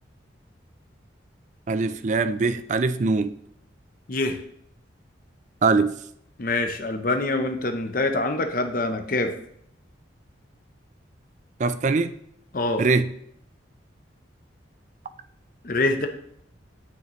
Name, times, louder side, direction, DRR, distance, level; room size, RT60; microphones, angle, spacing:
voice 1, 1.7-3.4 5.6-6.0 11.6-12.1 12.8-13.1, right 4 dB, 40° right, 12 dB, 0.3 m, -22 dB
voice 2, 4.1-4.4 6.4-9.3 12.5-12.8 15.6-16.1, left 2 dB, 45° left, 6 dB, 0.7 m, -25 dB
8.5 x 6.6 x 3.1 m, 0.72 s
head